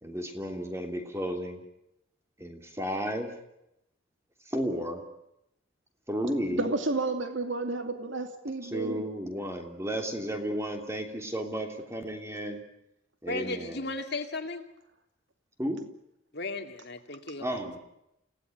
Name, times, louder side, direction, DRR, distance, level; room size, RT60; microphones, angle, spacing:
voice 1, 0.0-1.6 2.4-3.3 4.5-5.0 6.1-6.7 8.7-12.6 13.2-13.9 15.6-15.8 17.4-17.8, equal, 15° right, 4 dB, 3.1 m, -33 dB
voice 2, 6.5-9.0, right 3 dB, 60° right, 6 dB, 2.6 m, -31 dB
voice 3, 13.3-14.6 16.3-17.8, left 2 dB, 50° left, 5 dB, 2.4 m, -36 dB
29.0 x 18.0 x 9.3 m, 0.85 s
head